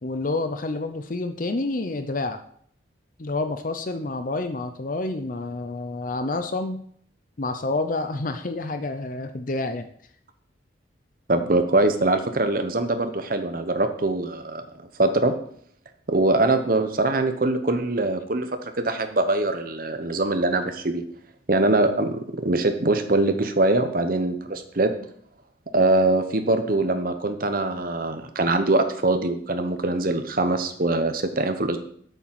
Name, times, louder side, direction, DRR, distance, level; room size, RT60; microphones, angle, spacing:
voice 1, 0.0-2.4 3.2-6.8 7.4-9.9, left 2 dB, 45° left, 8 dB, 0.6 m, -28 dB
voice 2, 11.3-14.7 15.0-15.3 16.1-21.0 21.5-24.9 25.7-31.8, right 2 dB, 45° right, 8 dB, 1.0 m, -23 dB
8.1 x 7.2 x 5.9 m, 0.63 s
head